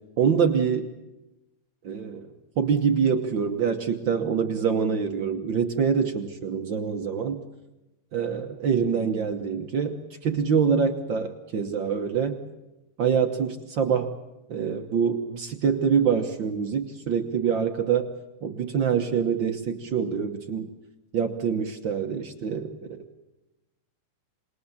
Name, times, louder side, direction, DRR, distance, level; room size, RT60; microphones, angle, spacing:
voice 1, 0.2-0.9 1.8-2.3 2.6-7.4 8.1-12.4 13.0-14.1 14.5-18.1 18.4-20.7 21.1-23.0, right 6 dB, 60° right, 5 dB, 1.3 m, -25 dB
26.5 x 21.0 x 7.2 m, 0.98 s
omnidirectional pair, 3.5 m